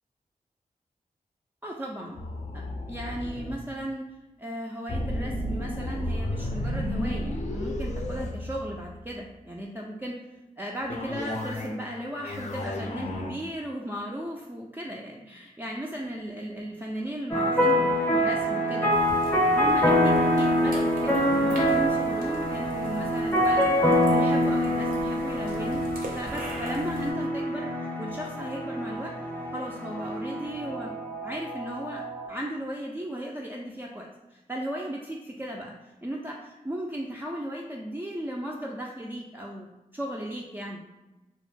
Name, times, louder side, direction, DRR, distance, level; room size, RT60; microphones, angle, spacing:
voice 1, 1.6-2.2 2.5-4.1 4.4-10.2 10.6-18.9 19.6-25.8 26.1-29.2 29.5-30.9 31.2-35.7 36.0-40.8, right 1 dB, 15° right, -2 dB, 0.4 m, -36 dB
sound 1, 2.2-3.6 4.9-9.1 10.9-11.8 12.2-13.3, left 1 dB, 50° left, 0.5 m, -32 dB
sound 2, 17.3-32.3, equal, 10° left, 0.7 m, -25 dB
sound 3, 18.9-27.1, right 1 dB, 70° right, 0.6 m, -43 dB
2.3 x 2.0 x 3.2 m, 1.0 s
cardioid pair, 40°, 15 cm